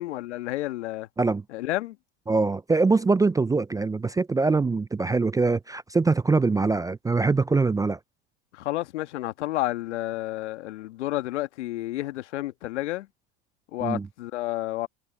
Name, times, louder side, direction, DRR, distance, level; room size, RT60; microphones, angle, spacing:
voice 1, 0.0-1.1 1.5-2.0 8.5-13.1 13.7-14.9, left 16 dB, 80° left, 1.8 m, -30 dB
voice 2, 2.3-8.0 13.8-14.1, right 3 dB, 10° right, 0.4 m, -23 dB
hypercardioid pair, 90°, 34 cm